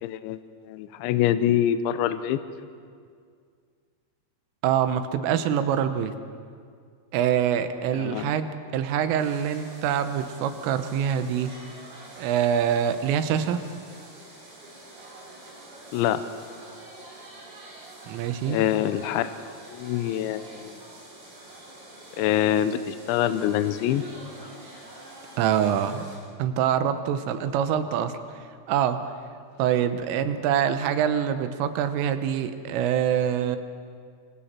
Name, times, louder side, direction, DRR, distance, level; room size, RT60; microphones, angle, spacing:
voice 1, 0.0-2.4 7.9-8.3 15.9-16.2 18.5-19.3 19.7-20.8 22.2-24.0, left 11 dB, 80° left, 11 dB, 3.0 m, -25 dB
voice 2, 4.6-6.1 7.1-11.5 12.2-13.6 18.1-18.6 25.4-26.1 26.4-28.1 28.7-29.0 29.6-33.6, right 9 dB, 90° right, 9 dB, 3.6 m, -25 dB
sound 1, 9.2-26.2, right 1 dB, 55° right, 9.4 m, -46 dB
26.0 x 25.0 x 4.4 m, 2.1 s
omnidirectional pair, 5.6 m